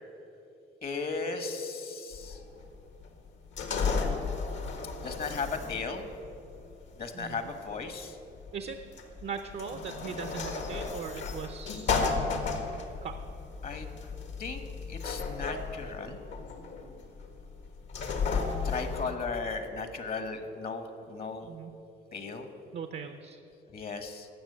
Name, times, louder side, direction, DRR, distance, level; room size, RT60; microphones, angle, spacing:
voice 1, 0.8-2.4 5.0-6.1 7.0-8.2 13.6-13.9 14.4-14.6 14.9-16.2 18.6-21.5 22.1-22.5 23.7-24.3, left 4 dB, 50° left, 8 dB, 1.3 m, -36 dB
sound 1, 2.1-19.0, left 4 dB, 70° left, 1.7 m, -34 dB
voice 2, 7.1-7.5 8.5-8.8 9.2-12.0 13.0-13.2 21.4-21.7 22.7-23.4, right 6 dB, 55° right, 7 dB, 0.8 m, -39 dB
15.0 x 6.0 x 8.5 m, 2.7 s
cardioid pair, 90°, 20 cm